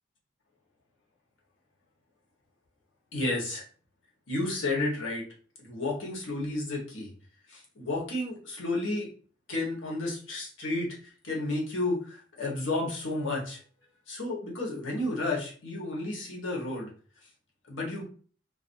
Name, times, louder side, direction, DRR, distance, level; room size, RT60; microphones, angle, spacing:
voice 1, 3.1-3.6 4.3-5.2 5.6-7.1 7.5-9.1 9.5-10.9 11.2-13.6 14.1-16.9 17.7-18.0, left 2 dB, 90° left, -3 dB, 1.0 m, -31 dB
2.4 x 2.4 x 2.5 m, 0.41 s
head